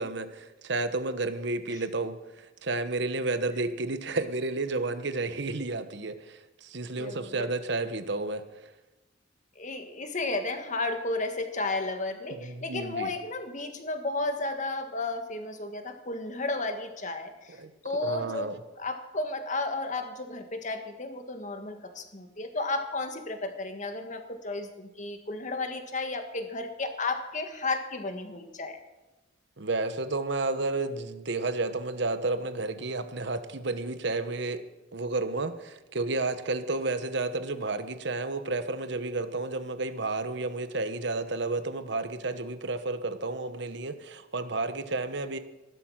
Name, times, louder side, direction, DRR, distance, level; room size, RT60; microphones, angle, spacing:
voice 1, 0.0-8.7 12.3-13.1 17.5-17.7 18.0-18.6 29.6-34.6 34.9-45.4, right 3 dB, 60° right, 10 dB, 1.1 m, -31 dB
voice 2, 6.9-7.5 9.6-18.5 18.8-28.8, left 2 dB, 40° left, 6 dB, 1.6 m, -33 dB
15.5 x 12.0 x 6.4 m, 1.0 s
head